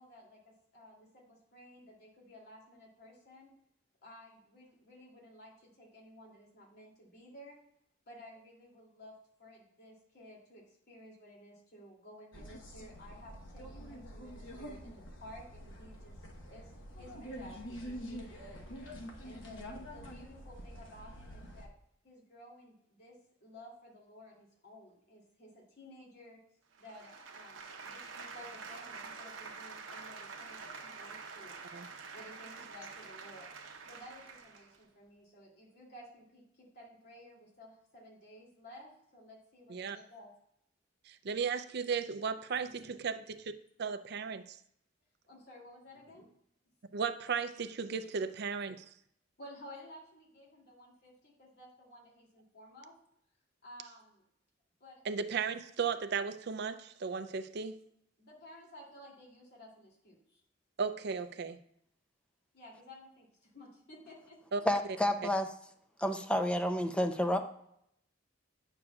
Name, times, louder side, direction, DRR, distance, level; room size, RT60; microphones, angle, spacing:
voice 1, 0.0-3.5 4.0-7.6 8.1-9.1 9.4-16.2 16.4-18.7 19.2-21.7 22.0-26.4 26.8-31.6 32.1-33.5 33.9-40.3 42.6-42.9 45.3-46.3 49.4-52.9 53.6-54.2 54.8-55.0 58.2-60.4 62.5-64.6, left 1 dB, 60° left, -3 dB, 2.7 m, -54 dB
sound 1, 12.3-21.7, equal, 75° left, 1.1 m, -47 dB
sound 2, 26.7-34.8, right 4 dB, 85° right, 0.9 m, -47 dB
voice 2, 41.1-43.5 43.8-44.6 46.9-48.8 55.1-57.8 60.8-61.6 64.5-64.6, right 5 dB, 60° right, 10 dB, 0.5 m, -35 dB
voice 3, 64.7-65.5 66.0-67.4, left 1 dB, 5° left, 6 dB, 0.5 m, -30 dB
9.6 x 6.8 x 2.4 m, 0.72 s
head